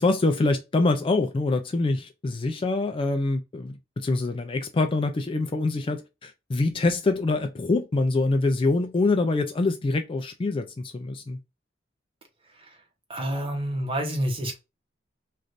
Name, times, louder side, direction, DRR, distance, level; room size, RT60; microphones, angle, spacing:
voice 1, 0.0-11.4, left 2 dB, 25° left, 0.3 m, -25 dB
voice 2, 13.1-14.6, equal, 30° right, 0.9 m, -28 dB
3.2 x 2.5 x 2.5 m
head